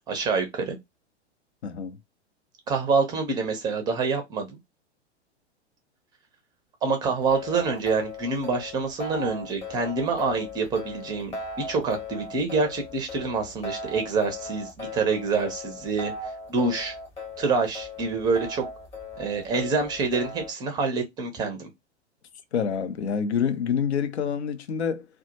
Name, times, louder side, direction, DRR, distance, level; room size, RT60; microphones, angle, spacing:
voice 1, 0.1-0.8 2.7-4.6 6.8-16.1 16.5-16.9 17.4-18.6 19.2-21.7, right 4 dB, 10° right, 0.5 m, -26 dB
voice 2, 1.6-2.0 22.5-25.1, left 7 dB, 70° left, 0.6 m, -27 dB
sound 1, 7.2-20.5, left 2 dB, 15° left, 0.9 m, -38 dB
2.2 x 2.0 x 2.8 m
figure-of-eight pair, 105°, 35 cm